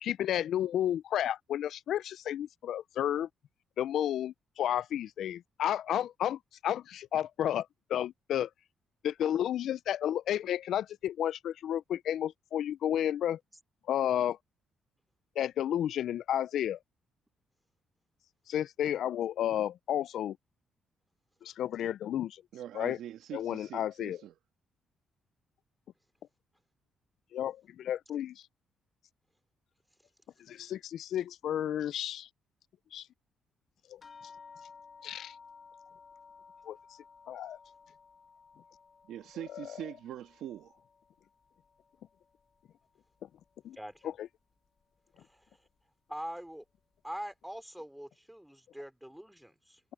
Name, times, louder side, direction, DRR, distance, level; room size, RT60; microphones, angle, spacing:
voice 1, 0.0-3.3 3.8-8.5 9.0-13.4 13.9-14.4 15.4-16.8 18.5-20.4 21.4-22.4 22.7-23.0 23.3-24.2 27.3-28.4 30.5-32.3 32.9-33.1 33.9-34.0 35.0-35.3 36.7-36.8 37.3-37.6 43.6-43.8 44.2-44.3, left 11 dB, 70° left, 0.3 m, -32 dB
voice 2, 22.5-24.3 39.1-40.8, right 11 dB, 80° right, 1.5 m, -43 dB
sound 1, 34.0-42.8 43.1-44.0 44.8-44.9 45.3-45.4, left 5 dB, 40° left, 2.1 m, -56 dB
voice 3, 43.7-44.1 45.2-45.4 46.1-46.6 47.0-49.8, equal, 5° right, 3.0 m, -43 dB
cardioid pair, 90°, 0 cm